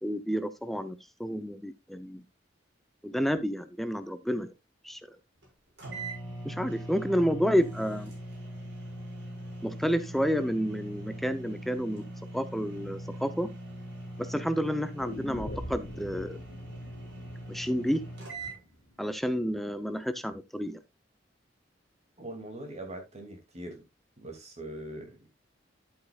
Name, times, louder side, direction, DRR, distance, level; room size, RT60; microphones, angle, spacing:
voice 1, 0.0-2.2 3.0-4.5 4.8-5.0 6.4-8.1 9.6-12.0 12.3-13.5 14.2-16.4 17.5-18.0 19.0-20.8, equal, ahead, 0.6 m, -30 dB
sound 1, 5.4-5.5 5.8-18.6, right 1 dB, 65° right, 6.0 m, -41 dB
sound 2, 15.0-19.0 19.3-19.4, left 1 dB, 75° left, 2.4 m, -44 dB
voice 2, 22.2-23.8 24.2-25.3, right 1 dB, 35° right, 2.5 m, -42 dB
10.5 x 8.4 x 2.4 m
head